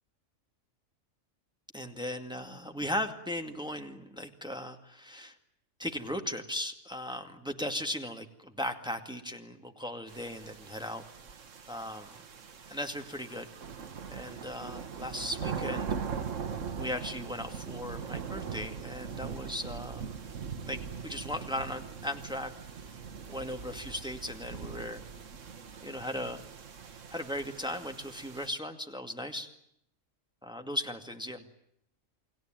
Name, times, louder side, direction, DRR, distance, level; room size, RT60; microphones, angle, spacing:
voice 1, 1.7-5.3 5.8-11.0 11.7-12.1 12.7-13.5 14.1-15.9 16.8-20.1 20.6-22.5 23.3-25.0 25.8-26.4 27.1-29.5 30.4-31.4, left 1 dB, 5° right, 5 dB, 2.2 m, -37 dB
sound 1, 10.1-28.5, right 6 dB, 65° right, 1.6 m, -41 dB
29.5 x 21.0 x 9.1 m, 0.77 s
omnidirectional pair, 1.4 m